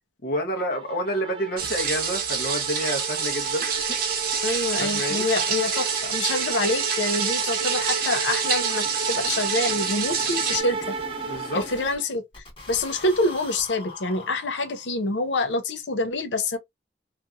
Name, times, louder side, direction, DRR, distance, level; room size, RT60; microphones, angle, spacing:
voice 1, 0.2-3.7 4.8-5.3 11.2-11.7, equal, 55° left, 0.8 m, -28 dB
sound 1, 0.7-12.0, right 5 dB, 30° right, 0.3 m, -33 dB
sound 2, 1.6-10.6, right 6 dB, 55° right, 0.7 m, -27 dB
voice 2, 4.4-10.9 11.5-16.6, left 2 dB, 90° left, 0.6 m, -26 dB
sound 3, 5.5-5.6 5.9-6.0 6.3-6.5 6.7-12.0 12.3-15.1, left 3 dB, 30° left, 1.0 m, -43 dB
2.7 x 2.5 x 2.3 m
head